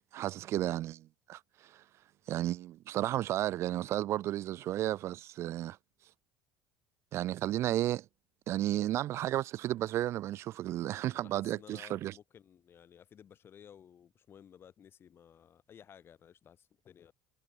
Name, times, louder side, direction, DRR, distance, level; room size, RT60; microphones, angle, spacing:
voice 1, 0.1-1.8 2.3-5.8 7.1-8.0 8.5-12.1, right 14 dB, 50° right, 0.4 m, -33 dB
voice 2, 11.1-17.1, left 8 dB, 40° left, 5.0 m, -56 dB
hypercardioid pair, 65°, 6 cm